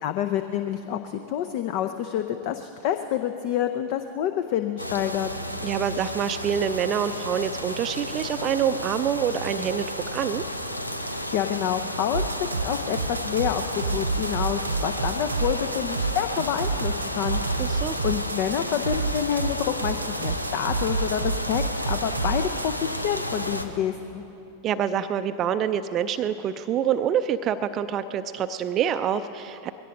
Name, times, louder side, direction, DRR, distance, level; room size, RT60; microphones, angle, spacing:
voice 1, 0.0-5.3 11.1-17.4 18.0-24.2, left 10 dB, 45° left, 9 dB, 0.6 m, -28 dB
sound 1, 4.8-23.7, equal, 85° left, 0.8 m, -32 dB
voice 2, 5.6-9.9 10.1-10.4 17.6-18.0 24.6-29.7, right 9 dB, 30° right, 10 dB, 0.5 m, -26 dB
sound 2, 12.1-22.8, right 4 dB, 75° right, 0.8 m, -29 dB
21.5 x 16.5 x 3.8 m, 3.0 s
figure-of-eight pair, 90°, 0 cm